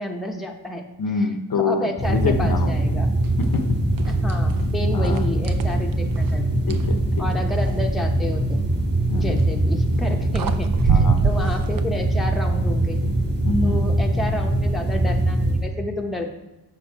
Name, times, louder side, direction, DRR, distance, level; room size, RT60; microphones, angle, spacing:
voice 1, 0.0-0.8 1.5-3.1 4.1-6.5 7.2-8.7 9.1-13.0 13.6-16.3, left 1 dB, ahead, 1 dB, 0.7 m, -30 dB
voice 2, 1.0-2.7 3.4-3.8 4.9-5.3 6.7-7.2 9.1-9.4 10.9-11.2 13.4-13.9, left 4 dB, 55° left, 6 dB, 0.6 m, -25 dB
sound 1, 2.0-15.7, right 1 dB, 25° right, 1.2 m, -22 dB
sound 2, 3.4-3.6 4.0-4.6 5.0-6.9 9.1-9.4 10.0-10.1 10.3-11.8, right 6 dB, 55° right, 0.5 m, -24 dB
6.8 x 5.0 x 4.4 m, 1.0 s
wide cardioid pair, 100°, 41 cm